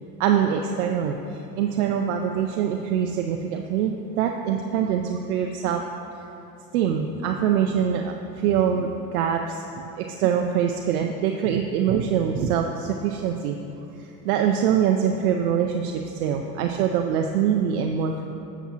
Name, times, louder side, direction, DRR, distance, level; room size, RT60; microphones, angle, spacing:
voice 1, 0.2-5.8 6.7-9.6 10.0-13.6 14.0-18.2, right 8 dB, 65° right, 3 dB, 0.6 m, -24 dB
11.0 x 7.0 x 2.9 m, 2.9 s
hypercardioid pair, 80°, 48 cm